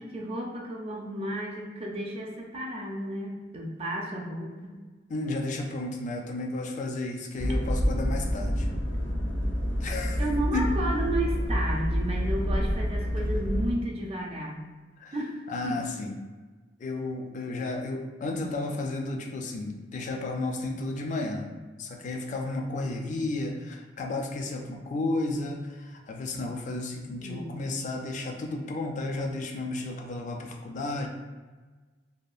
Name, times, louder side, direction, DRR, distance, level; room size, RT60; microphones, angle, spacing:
voice 1, 0.0-4.7 10.2-14.7 15.1-15.8 27.2-27.5, right 1 dB, 35° right, -1 dB, 0.4 m, -33 dB
voice 2, 5.1-8.7 9.8-10.6 15.0-15.2 15.5-16.1 16.8-21.5 21.8-31.1, left 2 dB, 45° left, 2 dB, 0.3 m, -33 dB
sound 1, 7.4-13.7, equal, 80° left, 0.6 m, -28 dB
2.7 x 2.2 x 2.3 m, 1.3 s
head